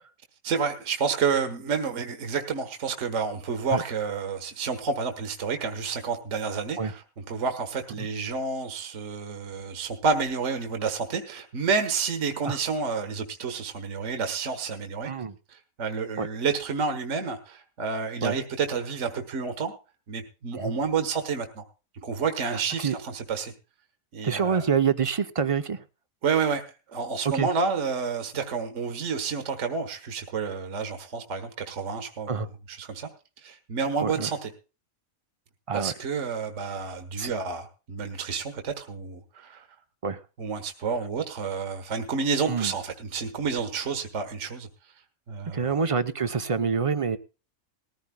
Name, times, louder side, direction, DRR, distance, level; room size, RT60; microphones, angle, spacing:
voice 1, 0.4-15.1 15.5-19.7 20.1-21.6 22.0-23.5 24.1-24.7 26.2-26.6 26.9-32.4 32.7-33.1 33.4-34.5 35.7-39.7 40.4-44.7 45.3-45.8, right 5 dB, 55° right, 5 dB, 1.5 m, -29 dB
voice 2, 22.5-23.0 24.2-25.8 27.3-27.5 32.3-32.5 34.0-34.3 35.7-35.9 37.2-37.3 40.0-40.2 42.5-42.7 45.5-47.2, right 6 dB, 35° right, 11 dB, 0.5 m, -26 dB
20.0 x 14.5 x 2.2 m, 0.33 s
omnidirectional pair, 1.5 m